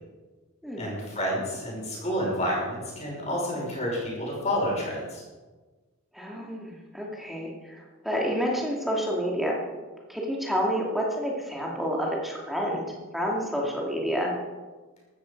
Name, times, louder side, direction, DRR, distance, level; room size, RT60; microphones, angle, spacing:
voice 1, 0.8-5.2, equal, 30° left, -3 dB, 5.8 m, -29 dB
voice 2, 6.1-7.5 8.0-9.6 10.1-14.3, equal, ahead, -2 dB, 2.5 m, -29 dB
14.5 x 12.5 x 5.3 m, 1.3 s
head